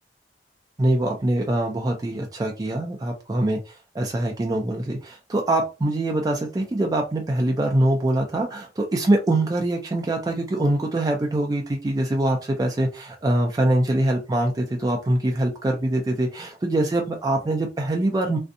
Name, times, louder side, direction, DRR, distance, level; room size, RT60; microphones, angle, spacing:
voice 1, 0.8-18.4, right 1 dB, 20° right, 1 dB, 0.4 m, -23 dB
2.6 x 2.2 x 2.5 m, 0.28 s
head